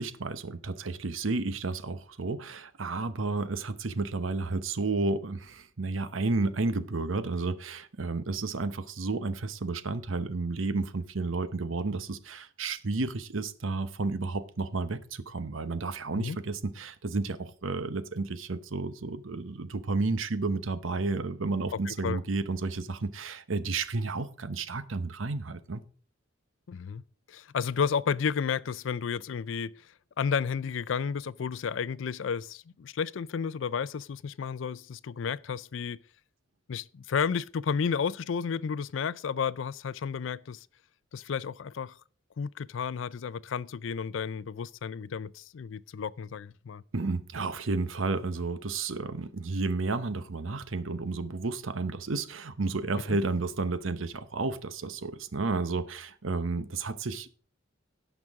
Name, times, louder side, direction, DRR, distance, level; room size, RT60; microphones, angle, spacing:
voice 1, 0.0-25.8 46.9-57.3, right 3 dB, 80° right, 0.9 m, -32 dB
voice 2, 21.9-22.2 26.7-27.0 27.3-29.8 30.2-36.0 36.7-40.7 41.1-42.0 42.4-46.8 53.1-53.2, left 6 dB, 70° left, 0.4 m, -32 dB
17.0 x 6.0 x 3.6 m
head